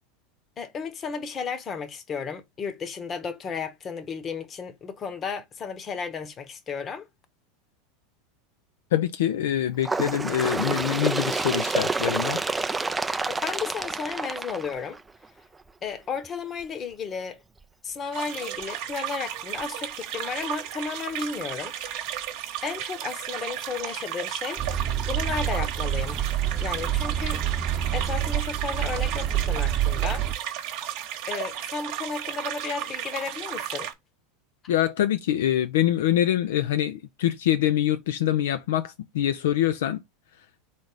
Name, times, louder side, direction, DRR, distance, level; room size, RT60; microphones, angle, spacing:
voice 1, 0.6-7.1 13.2-15.0 15.8-17.4 17.8-21.7 22.6-24.6 25.1-26.2 26.6-27.4 27.9-30.3 31.3-33.9 34.7-34.8, left 5 dB, 30° left, 1.0 m, -33 dB
voice 2, 8.9-12.4 34.7-40.0, left 11 dB, 75° left, 0.4 m, -24 dB
Bird, 9.8-15.3 16.1-16.3 16.6-16.7 17.6-17.7 18.6-18.7 19.6-19.7, right 3 dB, 15° right, 0.4 m, -28 dB
sound 1, 18.1-33.9, right 11 dB, 60° right, 1.0 m, -34 dB
sound 2, 24.6-30.3, right 11 dB, 30° right, 0.9 m, -27 dB
3.9 x 3.4 x 3.9 m
hypercardioid pair, 90°, 0 cm